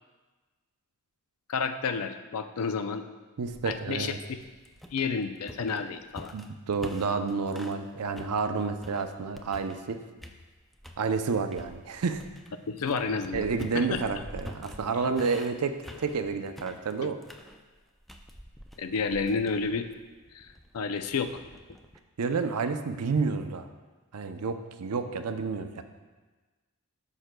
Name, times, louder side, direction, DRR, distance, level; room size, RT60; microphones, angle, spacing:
voice 1, 1.5-3.0 3.7-4.4 4.9-6.3 12.7-14.0 17.0-17.1 18.8-19.9 20.3-20.5 20.7-21.4, left 5 dB, 70° left, 9 dB, 0.5 m, -30 dB
voice 2, 3.4-4.2 6.3-10.0 11.0-12.2 13.3-17.2 22.2-23.7 24.1-25.8, right 4 dB, 85° right, 8 dB, 0.5 m, -30 dB
sound 1, 3.5-7.8 8.2-9.9 10.2-11.0 11.5-22.0, equal, ahead, 0.4 m, -47 dB
12.5 x 5.7 x 2.2 m, 1.3 s
head